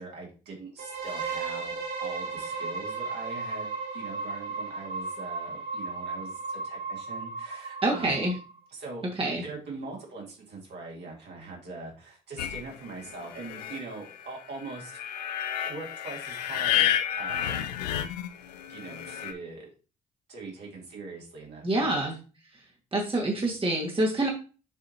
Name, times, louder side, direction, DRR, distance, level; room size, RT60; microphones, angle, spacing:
voice 1, 0.0-8.3 8.7-9.1 9.4-15.3 15.6-17.7 18.7-19.7 20.3-22.0, right 3 dB, 55° right, -2 dB, 2.8 m, -42 dB
sound 1, 0.8-8.6, right 4 dB, 70° right, 2.5 m, -35 dB
voice 2, 7.8-8.3 9.2-9.4 21.6-22.2 22.9-24.3, right 2 dB, 25° right, -1 dB, 1.9 m, -26 dB
sound 2, 12.4-19.3, left 11 dB, 80° left, 0.5 m, -31 dB
7.7 x 4.8 x 2.9 m, 0.33 s
figure-of-eight pair, 45°, 20 cm